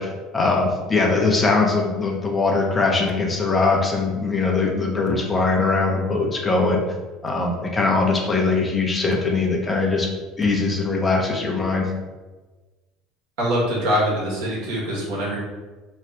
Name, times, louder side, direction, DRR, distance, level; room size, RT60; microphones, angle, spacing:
voice 1, 0.0-6.8 7.2-10.1 10.4-11.9, left 3 dB, 25° left, 0 dB, 0.9 m, -21 dB
voice 2, 13.4-15.4, equal, 75° right, -5 dB, 1.5 m, -23 dB
3.3 x 2.4 x 4.4 m, 1.2 s
hypercardioid pair, 75°, 0 cm